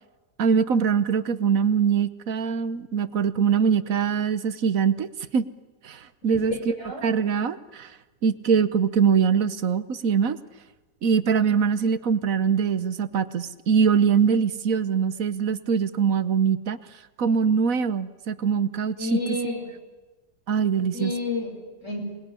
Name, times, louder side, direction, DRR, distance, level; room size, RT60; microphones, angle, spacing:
voice 1, 0.4-5.1 5.3-5.5 5.8-6.7 7.0-7.9 8.2-10.4 11.0-16.8 17.2-19.4 20.5-21.1, right 6 dB, 60° right, 13 dB, 1.4 m, -23 dB
voice 2, 19.0-19.6 20.9-22.0, left 2 dB, 50° left, 1 dB, 7.0 m, -30 dB
27.0 x 20.5 x 10.0 m, 1.2 s
omnidirectional pair, 1.7 m